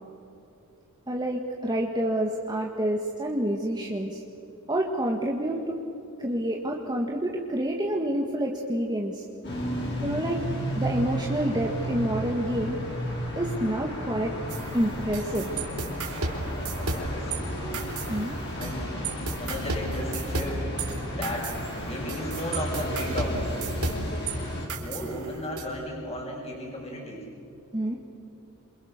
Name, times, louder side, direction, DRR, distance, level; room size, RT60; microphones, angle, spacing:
voice 1, 1.1-4.2 4.7-5.8 6.2-9.2 10.0-10.4 10.7-12.8 13.3-14.3 14.7-15.5 18.1-18.4 27.7-28.0, right 1 dB, 20° right, 0 dB, 1.8 m, -28 dB
sound 1, 9.4-24.7, equal, 55° left, 6.5 m, -33 dB
sound 2, 14.5-17.4 17.7-18.8 19.0-24.3 24.7-25.6, right 3 dB, 80° right, 4.1 m, -33 dB
voice 2, 16.6-17.8 18.6-18.9 19.4-24.2 24.8-27.2, left 1 dB, 30° left, -2 dB, 6.2 m, -35 dB
28.5 x 27.0 x 6.7 m, 3.0 s
head